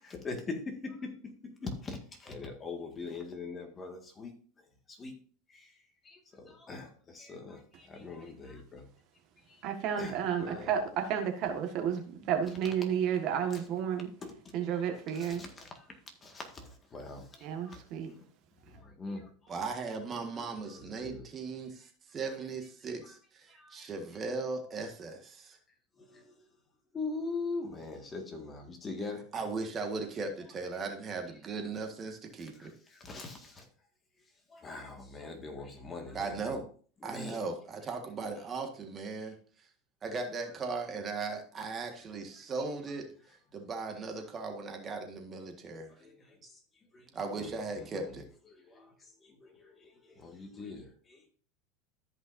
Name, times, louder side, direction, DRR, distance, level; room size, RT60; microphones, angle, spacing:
voice 1, 0.0-4.3 4.9-5.1 5.5-5.7 6.0-8.9 9.5-9.6 10.0-10.7 14.2-14.7 15.1-15.9 16.2-17.8 18.7-19.3 20.7-21.3 23.6-23.9 26.1-26.3 26.9-29.2 32.9-33.7 34.5-36.6 37.0-37.4 39.2-39.3 46.0-46.4 46.9-47.1 47.4-47.9 48.6-48.9 49.2-51.2, left 3 dB, 20° left, 4 dB, 1.8 m, -42 dB
voice 2, 9.6-14.1 14.5-15.4 17.4-18.1, right 8 dB, 50° right, 5 dB, 1.6 m, -31 dB
voice 3, 19.5-25.6 29.3-32.7 36.1-36.6 37.0-39.3 40.0-43.1 43.5-45.9 47.1-48.2, right 4 dB, 30° right, 4 dB, 1.6 m, -38 dB
13.5 x 5.5 x 2.7 m, 0.43 s
supercardioid pair, 125°, 0 cm